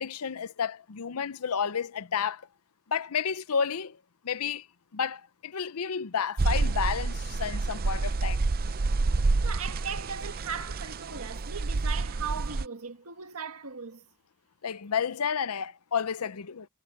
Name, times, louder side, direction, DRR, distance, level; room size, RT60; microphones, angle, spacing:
voice 1, 0.0-2.4 2.9-4.0 4.2-4.7 4.9-8.4 14.6-16.7, left 7 dB, 80° left, 0.7 m, -31 dB
sound 1, 6.4-12.6, right 3 dB, 45° right, 0.5 m, -28 dB
voice 2, 9.4-14.0, right 6 dB, 75° right, 1.6 m, -38 dB
head